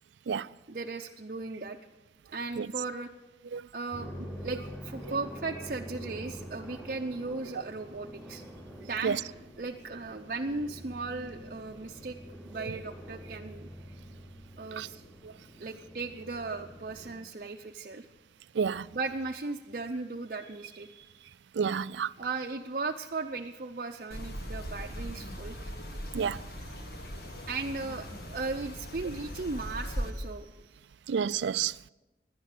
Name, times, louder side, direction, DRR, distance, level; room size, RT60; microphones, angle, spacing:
voice 1, 0.7-1.8 2.3-3.1 3.7-4.1 4.4-8.4 8.8-12.2 12.5-13.7 14.6-15.0 15.6-18.1 18.9-21.3 22.2-25.6 27.5-30.5, right 3 dB, 50° right, 0.6 m, -37 dB
sound 1, 3.9-17.1, equal, 10° left, 4.2 m, -45 dB
voice 2, 21.6-22.1 26.1-26.4 31.1-31.7, right 6 dB, 85° right, 0.4 m, -29 dB
sound 2, 24.1-30.1, equal, 60° left, 1.7 m, -39 dB
17.0 x 11.0 x 6.6 m
head